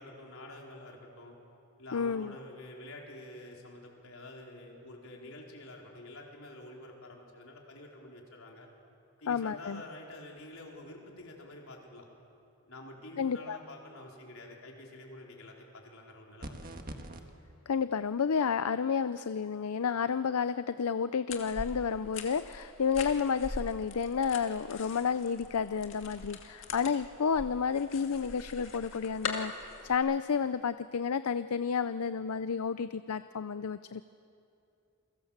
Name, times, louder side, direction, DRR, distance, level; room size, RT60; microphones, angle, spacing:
voice 1, 0.0-1.3 1.8-8.7 9.2-12.1 12.7-16.7, left 1 dB, 75° left, -1 dB, 4.6 m, -48 dB
voice 2, 1.9-2.3 9.3-9.8 13.2-13.6 17.7-34.0, left 6 dB, 90° left, 13 dB, 0.5 m, -31 dB
sound 1, 16.4-17.2, right 1 dB, 40° right, 1.6 m, -42 dB
sound 2, 21.3-29.9, left 3 dB, 60° left, 2.3 m, -43 dB
29.0 x 23.5 x 7.4 m, 2.6 s
head